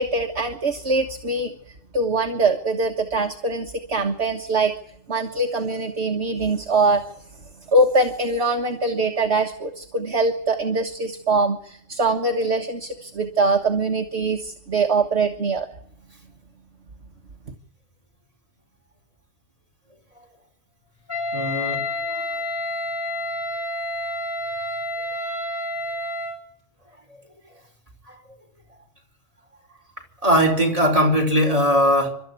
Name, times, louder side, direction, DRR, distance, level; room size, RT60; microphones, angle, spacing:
voice 1, 0.0-1.5 1.9-4.7 5.1-7.0 7.7-15.7, right 3 dB, 55° right, 3 dB, 1.7 m, -22 dB
Wind instrument woodwind instrument, 21.1-26.4, left 2 dB, 35° left, 4.3 m, -29 dB
voice 2, 21.3-22.4 28.1-28.2 30.2-32.1, equal, 25° right, 1 dB, 4.9 m, -20 dB
29.0 x 13.0 x 9.6 m, 0.73 s
omnidirectional pair, 1.4 m